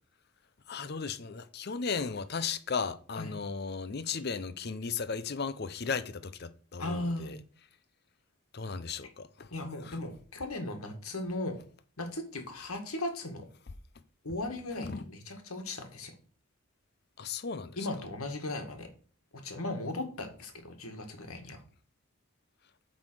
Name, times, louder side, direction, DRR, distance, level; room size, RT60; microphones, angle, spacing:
voice 1, 0.7-7.4 8.5-9.5 9.8-10.0 14.8-15.0 17.2-17.8, left 5 dB, 50° left, 0.6 m, -36 dB
voice 2, 6.8-7.4 9.5-11.6 12.0-13.5 14.2-16.1 17.8-18.9 19.4-21.6, left 2 dB, 85° left, 1.9 m, -37 dB
8.9 x 4.0 x 6.2 m
head